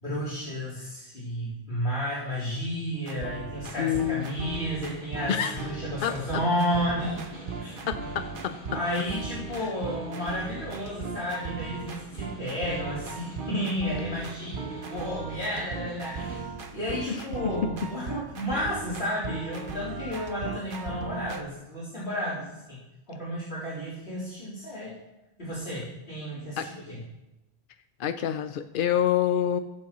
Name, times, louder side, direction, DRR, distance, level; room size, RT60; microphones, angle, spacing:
voice 1, 0.0-7.2 7.6-7.7 8.7-16.4 16.7-22.8 23.1-24.9 25.4-27.0, equal, 80° left, -12 dB, 4.1 m, -32 dB
sound 1, 2.9-21.4, right 4 dB, 60° right, 1.1 m, -38 dB
Snare drum, 3.7-16.5, right 2 dB, 25° left, 4.4 m, -45 dB
voice 2, 3.8-4.4 5.3-5.6 6.0-6.1 7.9-8.5 9.6-9.7 17.1-17.2 26.6-26.7 28.0-29.6, left 10 dB, 60° left, 8 dB, 0.7 m, -27 dB
21.0 x 7.1 x 3.1 m, 0.98 s
omnidirectional pair, 1.0 m